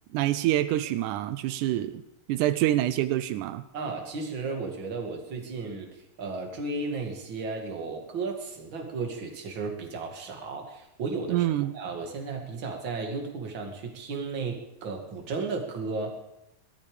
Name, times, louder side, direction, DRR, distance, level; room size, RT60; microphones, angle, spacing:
voice 1, 0.1-2.0 2.3-3.6 11.3-11.7, right 14 dB, 85° right, 12 dB, 2.2 m, -26 dB
voice 2, 3.7-5.9 6.2-11.5 11.7-16.2, right 4 dB, 40° right, 2 dB, 2.7 m, -34 dB
17.5 x 13.0 x 5.1 m, 0.88 s
omnidirectional pair, 3.5 m